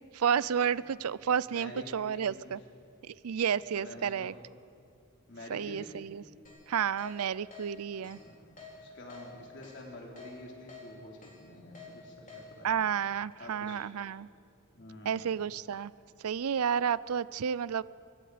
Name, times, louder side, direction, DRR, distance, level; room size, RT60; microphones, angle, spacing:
voice 1, 0.1-2.6 3.1-4.3 5.5-6.2 6.7-8.2 12.6-14.3 15.1-15.9 16.2-17.8, right 7 dB, 85° right, 19 dB, 0.5 m, -31 dB
voice 2, 1.4-2.5 3.7-4.3 5.3-5.9 7.9-12.8 13.4-13.8 14.7-15.2, left 1 dB, 50° left, -1 dB, 3.9 m, -48 dB
Keyboard (musical), 6.4-6.6 7.0-7.1 7.5-7.6 8.0-8.2 8.6-8.7 9.1-9.2 9.6-9.8 10.2-10.3 10.7-10.8 11.2-11.3 11.7-11.9 12.3-12.4, left 6 dB, 35° left, 4.2 m, -48 dB
24.0 x 24.0 x 5.0 m, 2.4 s
head